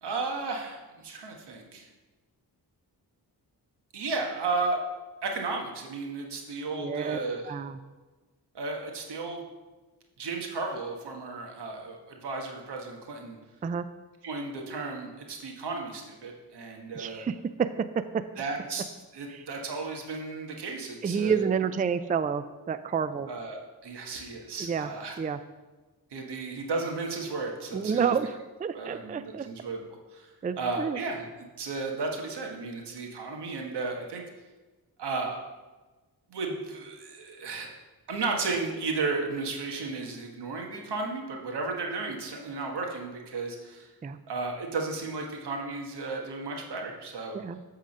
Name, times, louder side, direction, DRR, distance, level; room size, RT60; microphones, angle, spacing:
voice 1, 0.0-1.9 3.9-4.8 5.2-7.5 8.5-9.4 10.2-13.4 14.2-17.2 18.4-18.8 19.1-21.4 23.3-23.6 23.8-25.2 26.1-28.1 28.7-29.8 30.1-30.3 30.6-34.2 35.0-35.4 36.3-37.7 38.1-43.9 44.3-47.4, right 3 dB, 80° right, 2 dB, 1.4 m, -34 dB
voice 2, 6.8-7.2 7.4-7.8 13.6-13.8 16.9-18.2 19.3-19.5 21.0-23.3 24.6-24.9 25.2-25.4 27.7-29.5 30.4-31.0 44.0-44.2 47.3-47.6, right 6 dB, 20° right, 12 dB, 0.3 m, -29 dB
8.8 x 3.8 x 6.4 m, 1.2 s
cardioid pair, 70°, 40 cm